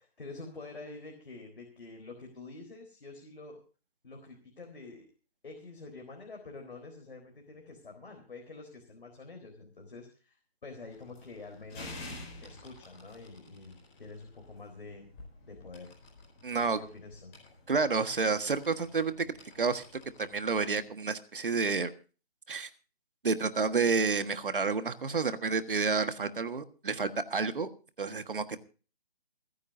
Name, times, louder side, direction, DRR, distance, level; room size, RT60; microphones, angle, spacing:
voice 1, 0.0-3.6 4.0-5.1 5.4-10.4 10.6-12.1 12.4-15.1 15.5-15.9 16.5-17.3, left 3 dB, 55° left, 2 dB, 4.2 m, -47 dB
sound 1, 10.8-20.9, left 2 dB, 10° left, 4.6 m, -51 dB
voice 2, 16.4-16.8 17.7-19.8 20.2-21.9 22.5-22.7 23.2-27.7 28.0-28.6, right 4 dB, 55° right, 10 dB, 1.5 m, -30 dB
29.0 x 9.7 x 2.7 m, 0.36 s
hypercardioid pair, 180°, 31 cm